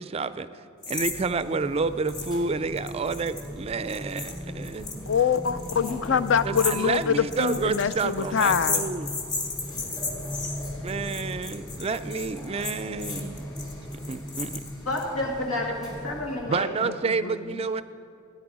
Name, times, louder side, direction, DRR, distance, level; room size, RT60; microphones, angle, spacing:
voice 1, 0.0-4.9 6.4-9.1 10.8-13.6 14.1-14.6 16.5-17.8, right 4 dB, 30° right, 13 dB, 0.3 m, -29 dB
sound 1, 0.8-1.2 1.4-1.5 2.1-2.4 2.7-15.0, left 4 dB, 35° left, 1.4 m, -34 dB
sound 2, 0.9-16.5, equal, 20° left, 2.7 m, -38 dB
voice 2, 5.1-8.9 16.5-17.7, left 7 dB, 60° left, 13 dB, 0.4 m, -25 dB
voice 3, 5.7-6.0 14.9-16.8, left 1 dB, 90° left, 0 dB, 2.2 m, -30 dB
16.5 x 10.0 x 4.9 m, 2.5 s
head